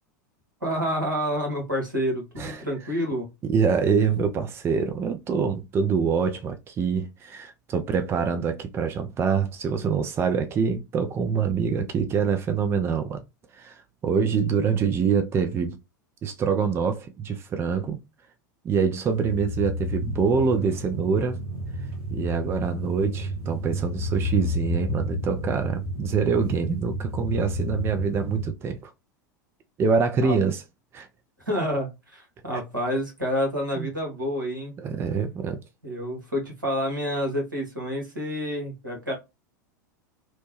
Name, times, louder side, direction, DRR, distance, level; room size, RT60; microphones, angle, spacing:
voice 1, 0.6-3.3 30.2-30.3 31.5-34.8 35.8-39.1, equal, 80° right, 1.3 m, -28 dB
voice 2, 3.4-13.2 13.5-15.8 16.2-18.0 18.6-21.4 22.1-28.9 29.8-30.6 30.9-31.1 33.8-33.9 34.8-35.6, right 6 dB, 25° right, 0.4 m, -25 dB
sound 1, 19.1-28.5, equal, 50° right, 1.3 m, -31 dB
2.9 x 2.1 x 3.0 m
figure-of-eight pair, 85°, 10 cm